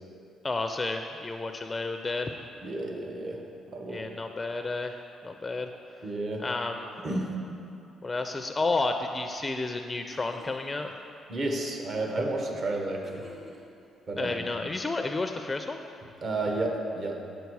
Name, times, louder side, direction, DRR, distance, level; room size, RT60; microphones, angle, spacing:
voice 1, 0.4-2.4 3.9-5.0 5.2-5.7 6.4-6.9 8.0-11.0 14.2-15.8, left 3 dB, 25° left, 5 dB, 0.4 m, -31 dB
voice 2, 2.6-3.4 3.7-4.1 6.0-6.4 7.0-7.3 11.3-13.3 14.1-14.5 16.2-17.2, right 2 dB, 45° right, 2 dB, 1.1 m, -31 dB
sound 1, 9.7-9.8 10.1-10.7 13.0-13.9, left 1 dB, 30° right, 1.7 m, -51 dB
8.3 x 6.3 x 4.7 m, 2.6 s
cardioid pair, 90°, 0 cm